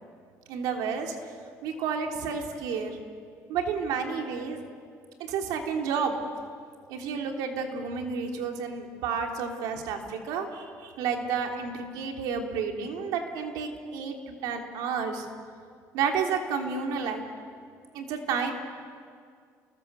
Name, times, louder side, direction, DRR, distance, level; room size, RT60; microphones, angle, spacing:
voice 1, 0.5-1.1 1.6-3.0 3.5-4.6 5.2-6.2 6.9-15.2 15.9-17.2 17.9-18.5, right 6 dB, 85° right, 2 dB, 3.2 m, -31 dB
29.0 x 21.5 x 6.9 m, 2.1 s
cardioid pair, 110°, 6 cm